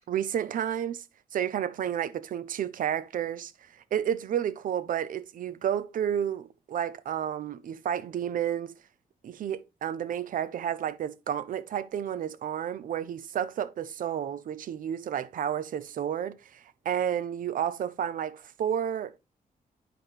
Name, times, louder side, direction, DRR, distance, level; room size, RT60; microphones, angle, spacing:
voice 1, 0.1-1.0 1.3-8.7 9.2-19.2, right 9 dB, 60° right, 0.5 m, -31 dB
9.0 x 5.8 x 3.3 m
wide cardioid pair, 165°, 16 cm